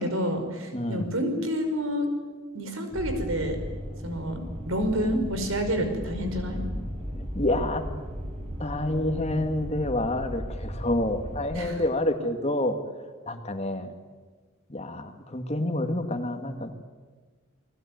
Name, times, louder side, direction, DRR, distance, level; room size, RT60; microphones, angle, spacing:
voice 1, 0.0-2.1 2.5-3.6 4.0-4.4 4.7-6.6 11.5-11.8, equal, 75° right, 6 dB, 5.4 m, -28 dB
voice 2, 0.7-1.1 7.1-7.9 8.6-12.8 13.3-13.9 14.7-16.7, left 1 dB, 30° left, 6 dB, 2.1 m, -28 dB
sound 1, 2.9-11.6, equal, 30° right, 7.6 m, -36 dB
29.5 x 20.5 x 9.5 m, 1.4 s
head